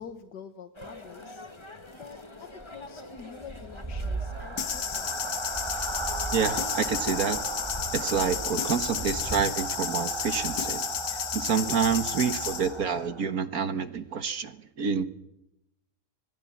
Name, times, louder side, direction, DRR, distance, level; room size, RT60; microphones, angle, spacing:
voice 1, 0.0-5.3, left 6 dB, 90° left, 6 dB, 2.0 m, -47 dB
sound 1, 0.7-9.4, left 1 dB, 15° left, 1.7 m, -43 dB
sound 2, 3.4-13.4, right 3 dB, 20° right, 1.0 m, -36 dB
sound 3, 4.6-12.7, left 8 dB, 70° left, 1.7 m, -32 dB
voice 2, 6.3-7.4 7.9-10.8 11.3-15.0, right 6 dB, 65° right, 10 dB, 1.8 m, -28 dB
25.5 x 18.5 x 7.4 m, 0.86 s
omnidirectional pair, 1.7 m